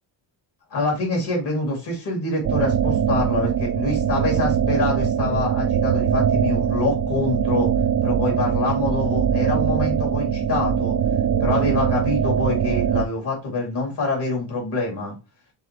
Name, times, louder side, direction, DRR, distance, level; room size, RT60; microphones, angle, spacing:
voice 1, 0.7-7.7 8.0-11.0 11.4-15.1, left 3 dB, 60° left, -1 dB, 2.6 m, -25 dB
sound 1, 2.4-13.0, right 8 dB, 40° right, 0.4 m, -22 dB
4.8 x 3.3 x 3.0 m, 0.27 s
cardioid pair, 120°, 45 cm